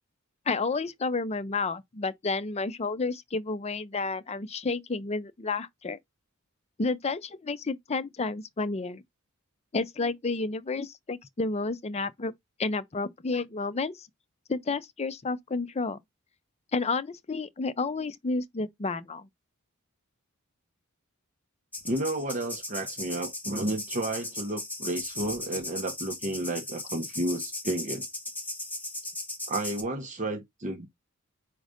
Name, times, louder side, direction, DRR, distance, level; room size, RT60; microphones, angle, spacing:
voice 1, 0.5-6.0 6.8-9.0 9.7-12.3 12.6-14.1 14.5-16.0 16.7-19.3, left 3 dB, 30° left, 0.5 m, -31 dB
sound 1, 21.7-29.8, left 2 dB, 10° left, 1.6 m, -37 dB
voice 2, 21.9-28.0 29.5-30.9, right 1 dB, 35° right, 1.0 m, -32 dB
5.0 x 3.9 x 5.0 m
head